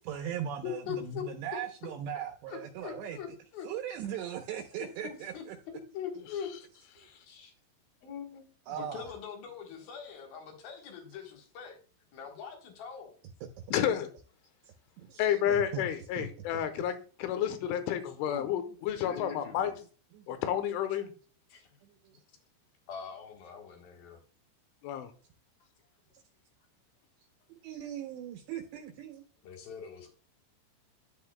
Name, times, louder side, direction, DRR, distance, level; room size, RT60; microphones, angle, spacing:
voice 1, 0.1-3.4 3.6-5.6 8.7-9.1 15.0-15.9 16.2-16.6 20.1-20.4 21.8-21.9 27.5-29.2, right 8 dB, 75° right, 3 dB, 2.8 m, -39 dB
voice 2, 0.6-1.3 2.5-3.7 4.2-4.3 5.0-6.5 6.9-7.5 8.0-11.8 12.1-13.2 18.3-18.5 19.0-19.7 21.5-21.8 22.9-24.2 29.4-30.1, left 8 dB, 65° left, 3 dB, 2.7 m, -42 dB
voice 3, 13.7-14.1 15.2-19.7 20.3-21.1 24.8-25.1, left 10 dB, 90° left, 9 dB, 3.4 m, -30 dB
11.0 x 8.6 x 2.2 m, 0.40 s
omnidirectional pair, 5.4 m